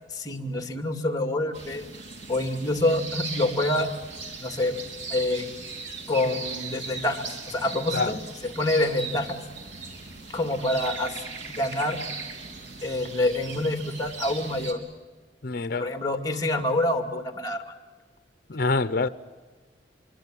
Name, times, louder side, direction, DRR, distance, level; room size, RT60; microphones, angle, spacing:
voice 1, 0.1-1.9 2.3-3.9 4.4-4.7 5.1-5.5 6.1-8.1 8.6-9.4 10.3-11.1 11.5-12.0 12.8-14.8 15.8-17.6, left 1 dB, 20° left, 2.4 m, -26 dB
sound 1, 1.5-14.7, right 4 dB, 80° right, 3.6 m, -38 dB
voice 2, 15.4-15.9 18.5-19.1, left 3 dB, 55° left, 0.8 m, -26 dB
26.0 x 23.5 x 7.7 m
head